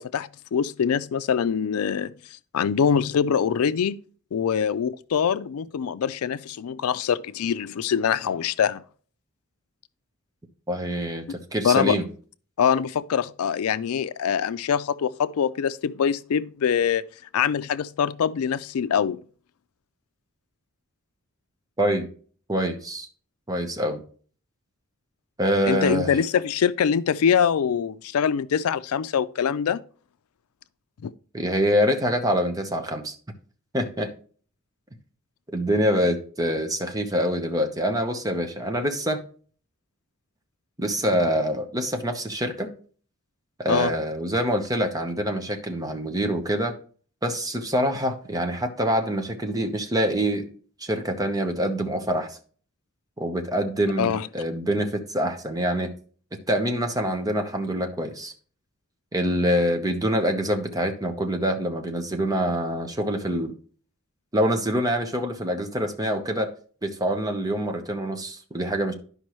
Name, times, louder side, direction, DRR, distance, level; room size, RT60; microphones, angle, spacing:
voice 1, 0.0-2.1 2.5-4.0 4.3-8.8 11.6-12.0 12.6-17.0 17.3-19.2 25.7-29.8 31.0-31.1 43.7-43.9 54.0-54.3, left 7 dB, 85° left, 0.4 m, -24 dB
voice 2, 10.7-12.1 21.8-22.1 22.5-23.1 23.5-24.0 25.4-26.2 31.3-33.1 33.7-34.1 35.5-39.2 40.8-42.7 43.6-46.7 47.2-50.5 50.8-52.4 53.2-55.9 56.3-58.3 59.1-63.5 64.3-66.5 66.8-68.9, equal, 15° right, 0.9 m, -25 dB
11.5 x 5.2 x 3.1 m
head